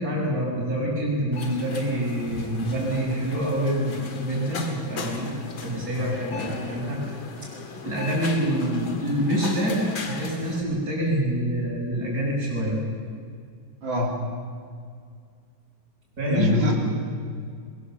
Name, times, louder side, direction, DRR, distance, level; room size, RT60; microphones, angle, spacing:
voice 1, 0.0-5.3 5.6-7.1 7.4-7.5 7.8-12.8 16.2-16.6, right 1 dB, 45° right, -3 dB, 7.4 m, -26 dB
sound 1, 1.3-10.6, left 4 dB, 80° left, 2.8 m, -38 dB
voice 2, 6.0-6.4 13.8-14.1 16.3-16.7, left 2 dB, 80° right, -1 dB, 4.3 m, -25 dB
22.5 x 22.0 x 7.1 m, 2.1 s
omnidirectional pair, 2.1 m